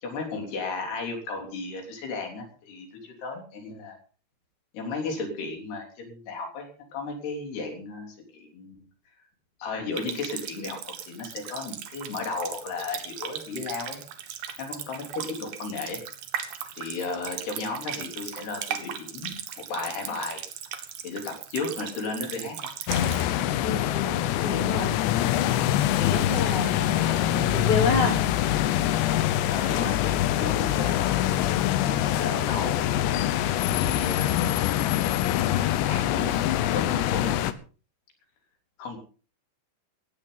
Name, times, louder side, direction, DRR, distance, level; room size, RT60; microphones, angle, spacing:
voice 1, 0.0-4.0 4.7-8.8 9.6-14.0 14.6-16.0 16.7-19.4 19.7-20.4 21.0-22.7 27.0-27.5 29.5-31.4 31.8-32.8 33.7-34.6 35.8-37.4 38.8-39.0, left 3 dB, 70° left, 3 dB, 5.3 m, -34 dB
Water tap faucet, 9.9-23.3, right 9 dB, 65° right, 3.1 m, -37 dB
sound 1, 22.9-37.5, left 12 dB, 85° left, 3.2 m, -24 dB
voice 2, 23.6-24.9 26.0-27.0 27.5-28.2, left 3 dB, 45° left, 3 dB, 4.6 m, -28 dB
17.5 x 15.5 x 4.0 m, 0.37 s
omnidirectional pair, 4.9 m